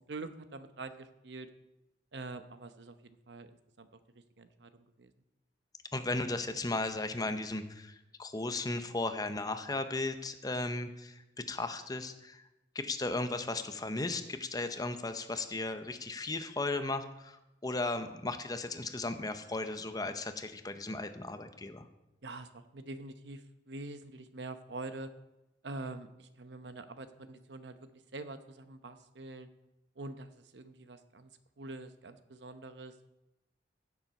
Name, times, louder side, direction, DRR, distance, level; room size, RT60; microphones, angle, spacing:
voice 1, 0.1-1.5 2.1-3.5 3.8-3.9 4.4-5.1 22.2-25.1 25.6-27.8 28.1-29.5 30.0-31.3 31.6-32.9, right 2 dB, 70° right, 10 dB, 0.9 m, -45 dB
voice 2, 5.9-12.5 12.7-21.9, left 2 dB, 20° left, 9 dB, 0.8 m, -36 dB
16.0 x 7.3 x 5.4 m, 0.95 s
head